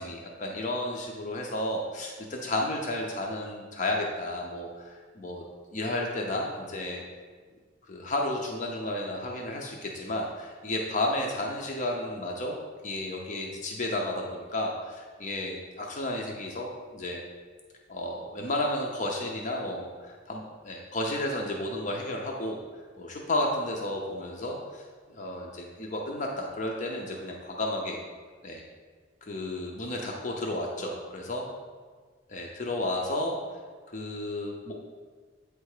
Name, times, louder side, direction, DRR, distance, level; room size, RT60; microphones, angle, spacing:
voice 1, 0.0-5.4 5.7-7.0 7.9-12.6 12.8-17.2 17.9-22.6 23.0-24.8 25.1-28.0 28.4-28.6 29.2-31.5 32.3-33.4 33.9-34.7, left 1 dB, 40° left, 0 dB, 0.6 m, -32 dB
8.2 x 3.4 x 4.8 m, 1.5 s
head